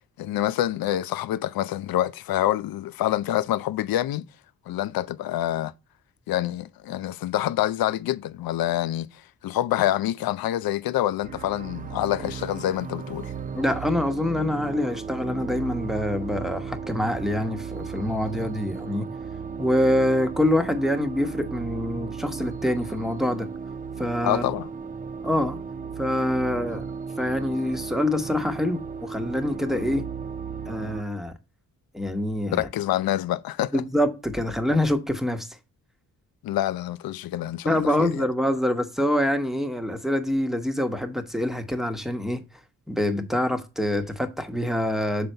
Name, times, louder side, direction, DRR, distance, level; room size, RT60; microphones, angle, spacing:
voice 1, 0.2-4.3 4.7-5.7 6.3-9.1 9.4-13.3 24.2-24.7 32.5-33.8 36.4-38.2, left 13 dB, 80° left, 0.5 m, -26 dB
sound 1, 11.2-31.0, right 6 dB, 25° right, 0.4 m, -35 dB
voice 2, 13.5-19.1 19.6-23.5 24.0-24.4 25.2-25.6 26.0-26.8 27.2-30.0 30.7-31.3 31.9-32.7 33.7-35.5 37.6-42.4 42.9-45.3, left 1 dB, ahead, 1.0 m, -25 dB
6.6 x 4.0 x 4.4 m
cardioid pair, 70°, 35 cm